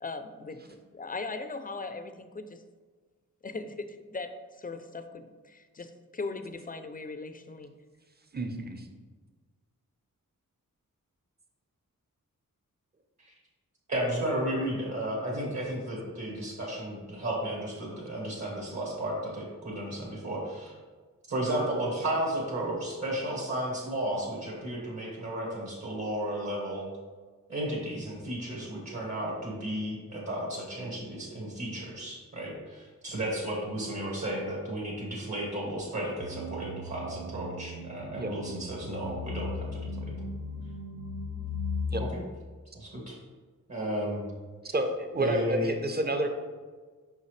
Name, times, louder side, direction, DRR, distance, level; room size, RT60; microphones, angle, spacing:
voice 1, 0.0-2.6 3.4-7.7, left 3 dB, 25° left, 9 dB, 0.4 m, -39 dB
voice 2, 8.3-8.9 38.1-38.3 41.9-42.0 44.7-46.3, right 1 dB, 30° right, 6 dB, 0.7 m, -29 dB
voice 3, 13.9-20.7 21.3-26.9 27.5-40.1 42.0-42.2 42.7-43.2 43.7-44.2 45.2-45.7, right 1 dB, 55° right, -3 dB, 1.6 m, -33 dB
sound 1, 36.2-42.1, left 3 dB, 80° right, 0.8 m, -37 dB
5.6 x 5.5 x 3.2 m, 1.4 s
wide cardioid pair, 80°, 33 cm